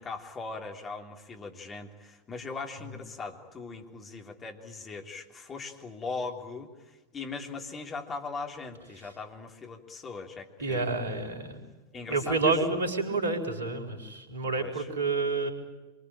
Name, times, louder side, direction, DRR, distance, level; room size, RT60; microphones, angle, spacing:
voice 1, 0.0-10.9 11.9-12.6 14.6-14.9, left 4 dB, 20° left, 2 dB, 3.4 m, -40 dB
voice 2, 10.6-11.6 11.9-15.5, right 3 dB, 65° right, 5 dB, 4.3 m, -29 dB
26.5 x 24.0 x 9.0 m, 1.1 s
figure-of-eight pair, 90°, 0 cm